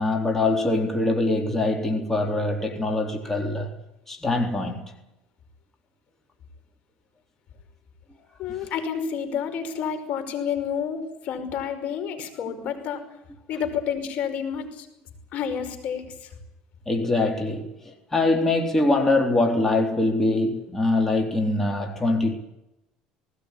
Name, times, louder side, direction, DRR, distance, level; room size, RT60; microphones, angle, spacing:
voice 1, 0.0-3.7 4.1-4.8 16.9-22.3, left 2 dB, 15° left, 3.6 m, -23 dB
voice 2, 8.4-13.0 13.5-14.9 15.3-16.3, left 7 dB, 55° left, 5.3 m, -29 dB
19.5 x 18.0 x 9.9 m
supercardioid pair, 110°, 3 cm